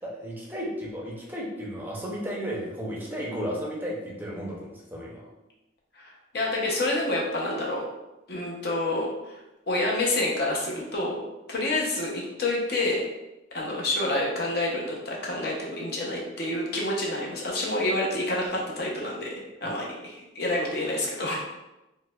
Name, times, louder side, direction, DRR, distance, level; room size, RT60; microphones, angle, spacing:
voice 1, 0.0-5.2, equal, 10° right, -3 dB, 0.5 m, -34 dB
voice 2, 5.9-7.9 8.3-9.4 9.7-11.2 11.5-13.0 13.5-21.4, left 1 dB, 55° left, -2 dB, 0.6 m, -28 dB
4.5 x 2.1 x 2.2 m, 0.98 s
head